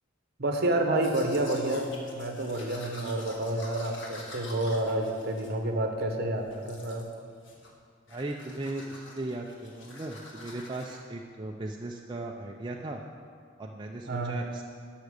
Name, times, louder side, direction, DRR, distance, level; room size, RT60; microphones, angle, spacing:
voice 1, 0.4-7.1 14.1-14.4, right 1 dB, 55° right, 4 dB, 1.2 m, -29 dB
Domestic sounds home sounds, 0.9-6.1 6.5-7.2 7.4-7.8 8.1-11.0, left 2 dB, 65° left, 1.6 m, -47 dB
voice 2, 8.1-13.0 13.6-14.6, right 2 dB, 25° right, 0 dB, 0.5 m, -37 dB
11.5 x 6.0 x 6.5 m, 2.2 s
head